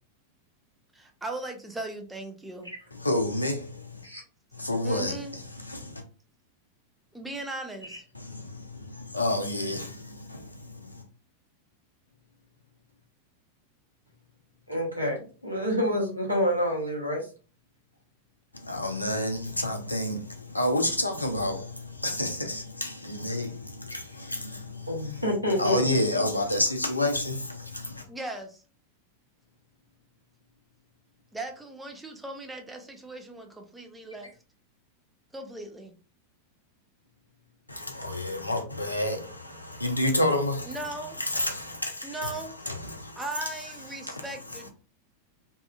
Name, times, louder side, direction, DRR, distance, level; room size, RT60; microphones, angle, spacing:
voice 1, 0.9-2.7 4.8-5.3 7.1-8.0 28.1-28.6 31.3-34.3 35.3-35.9 40.7-41.2 42.0-42.5 43.2-44.7, right 2 dB, 5° right, 0.5 m, -38 dB
voice 2, 2.9-4.0 4.5-6.0 8.1-11.0 18.5-25.2 25.6-28.1 37.7-43.5 43.9-44.2, left 1 dB, 85° left, 0.5 m, -30 dB
voice 3, 14.7-17.3 23.9-24.0 24.9-25.8, equal, 85° right, 1.0 m, -28 dB
2.7 x 2.4 x 2.3 m
figure-of-eight pair, 90°, 0 cm